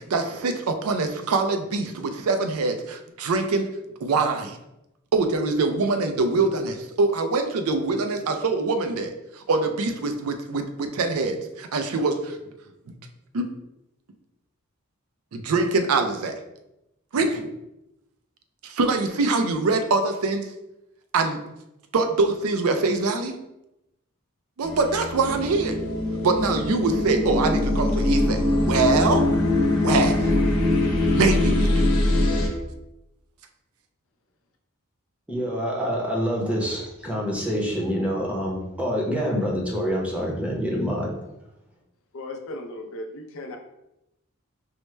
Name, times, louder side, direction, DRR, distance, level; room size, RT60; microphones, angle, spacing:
voice 1, 0.0-3.7 4.0-4.6 5.1-12.4 13.3-13.5 15.3-16.4 17.1-17.5 18.6-20.5 21.1-21.4 21.9-23.4 24.6-25.8 26.2-29.3 29.8-30.4 31.1-31.9, right 3 dB, 80° right, 7 dB, 0.4 m, -24 dB
sound 1, 24.6-32.5, left 2 dB, 80° left, 0.9 m, -22 dB
voice 2, 35.3-41.1, equal, 5° right, -2 dB, 0.7 m, -26 dB
voice 3, 42.1-43.6, left 1 dB, 65° left, 5 dB, 0.5 m, -36 dB
4.6 x 2.1 x 3.1 m, 0.89 s
head